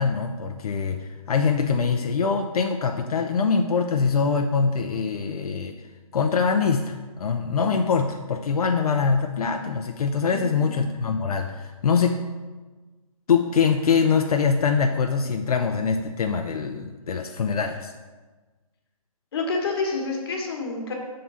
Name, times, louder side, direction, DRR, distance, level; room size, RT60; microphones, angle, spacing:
voice 1, 0.0-5.8 6.1-12.2 13.3-17.9, left 5 dB, 80° left, 5 dB, 0.5 m, -23 dB
voice 2, 10.3-10.6 19.3-20.9, left 3 dB, 40° left, 1 dB, 1.2 m, -28 dB
5.8 x 3.8 x 5.4 m, 1.3 s
hypercardioid pair, 165°, 19 cm